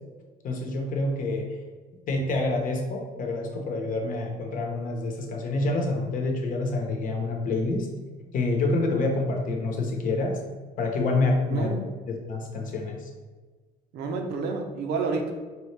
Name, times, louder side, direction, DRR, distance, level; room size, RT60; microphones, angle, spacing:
voice 1, 0.4-1.5 2.1-7.9 8.3-10.4 10.8-11.7 12.3-13.1, left 2 dB, 55° left, 2 dB, 0.9 m, -27 dB
voice 2, 11.5-11.8 13.9-15.3, right 4 dB, 80° right, 4 dB, 0.7 m, -29 dB
4.7 x 3.0 x 3.3 m, 1.4 s
cardioid pair, 110°, 17 cm